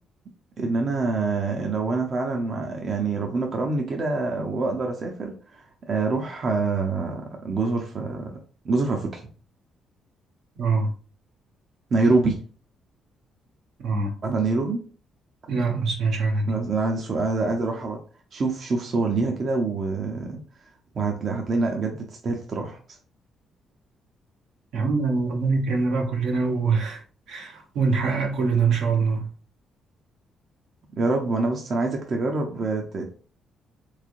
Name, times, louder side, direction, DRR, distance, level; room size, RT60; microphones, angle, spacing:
voice 1, 0.6-8.4 8.6-9.2 11.9-12.4 14.2-14.8 16.5-18.0 18.3-20.4 20.9-22.8 31.0-33.0, right 3 dB, 50° right, 0.7 m, -25 dB
voice 2, 10.6-10.9 13.8-14.1 15.5-16.5 24.7-27.0 27.3-29.3, right 4 dB, 75° right, 1.0 m, -24 dB
3.6 x 3.2 x 2.5 m
cardioid pair, 90°, 0 cm